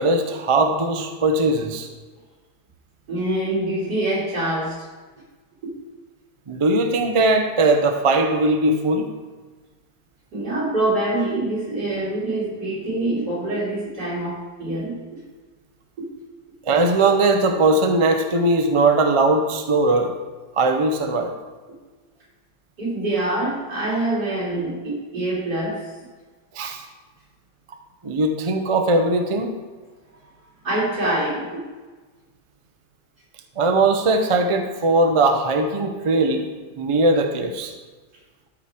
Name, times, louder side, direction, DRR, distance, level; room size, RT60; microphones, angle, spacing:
voice 1, 0.0-1.9 6.5-9.1 16.7-20.1 20.6-21.3 26.5-26.8 28.0-29.5 33.6-36.5 36.8-37.7, right 2 dB, 40° right, 5 dB, 0.5 m, -19 dB
voice 2, 3.1-4.8 5.6-5.7 10.3-15.0 16.0-16.1 22.8-25.8 30.6-31.5, right 1 dB, 85° right, -7 dB, 3.9 m, -25 dB
12.5 x 4.9 x 4.4 m, 1.3 s
omnidirectional pair, 1.7 m